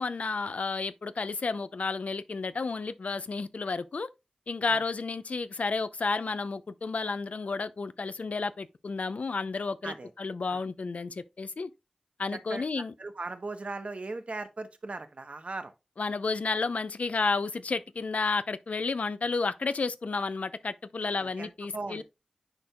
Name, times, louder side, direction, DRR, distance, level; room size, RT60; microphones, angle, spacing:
voice 1, 0.0-4.1 4.5-11.7 12.2-12.9 16.0-22.0, left 4 dB, 75° left, 0.4 m, -31 dB
voice 2, 12.3-12.6 13.0-15.7 21.0-22.0, right 3 dB, 65° right, 0.9 m, -38 dB
9.7 x 4.3 x 2.2 m
cardioid pair, 45°, 2 cm